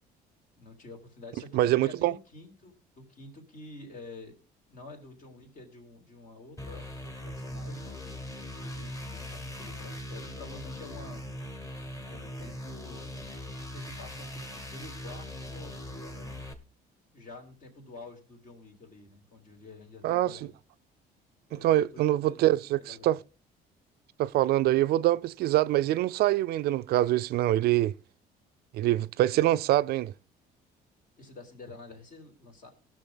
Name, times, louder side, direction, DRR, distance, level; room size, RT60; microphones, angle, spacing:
voice 1, 0.5-4.4 4.7-6.8 7.2-8.3 8.6-11.2 12.1-13.2 13.6-16.4 17.1-20.5 21.5-23.1 31.2-32.7, left 2 dB, 50° left, 3.4 m, -48 dB
voice 2, 1.5-2.1 20.0-20.4 21.5-23.2 24.2-28.0 28.7-30.1, right 14 dB, 70° right, 0.4 m, -25 dB
sound 1, 6.6-16.5, left 1 dB, 20° left, 1.7 m, -40 dB
17.5 x 6.3 x 4.0 m
cardioid pair, 110°, 17 cm